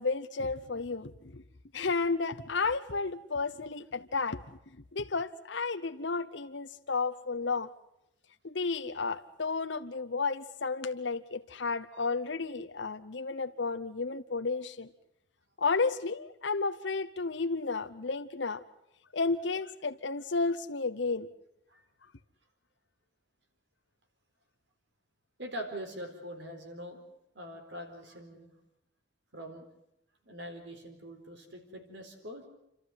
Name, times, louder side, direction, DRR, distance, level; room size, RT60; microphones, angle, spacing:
voice 1, 0.0-1.4 1.7-4.4 4.9-7.7 8.4-14.9 15.6-18.6 19.1-21.3, left 4 dB, 65° left, 8 dB, 0.9 m, -32 dB
voice 2, 25.4-27.0 27.3-28.5 29.3-29.6 30.3-32.5, equal, 60° right, 5 dB, 4.3 m, -43 dB
29.5 x 13.0 x 9.8 m, 0.82 s
head